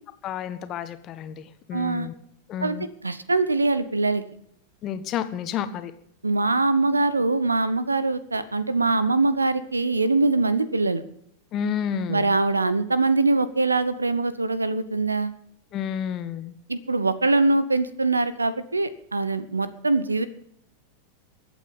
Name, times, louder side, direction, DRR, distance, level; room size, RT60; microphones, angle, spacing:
voice 1, 0.2-2.1 2.5-2.9 4.8-5.9 11.5-12.4 15.7-16.5, left 8 dB, 35° left, 11 dB, 1.4 m, -30 dB
voice 2, 1.7-2.1 2.6-2.8 3.0-4.2 6.2-11.0 12.1-15.3 16.7-20.3, right 3 dB, 80° right, 16 dB, 1.1 m, -23 dB
23.0 x 8.7 x 5.4 m, 0.70 s
figure-of-eight pair, 90°, 0 cm